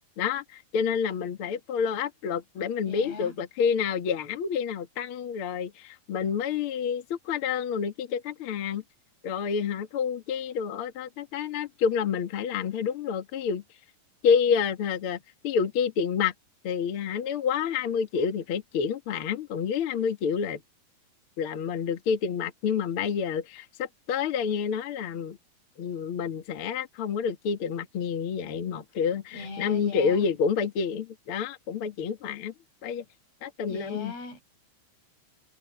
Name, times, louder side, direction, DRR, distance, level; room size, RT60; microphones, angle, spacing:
voice 1, 0.2-8.8 9.2-13.6 14.2-15.2 15.4-16.3 16.6-20.6 21.4-25.4 25.8-32.5 32.8-33.0 33.4-34.1, left 6 dB, 50° left, 1.7 m, -28 dB
voice 2, 2.8-3.4 29.3-30.4 33.7-34.4, left 3 dB, 75° left, 8.8 m, -40 dB
omnidirectional pair, 4.6 m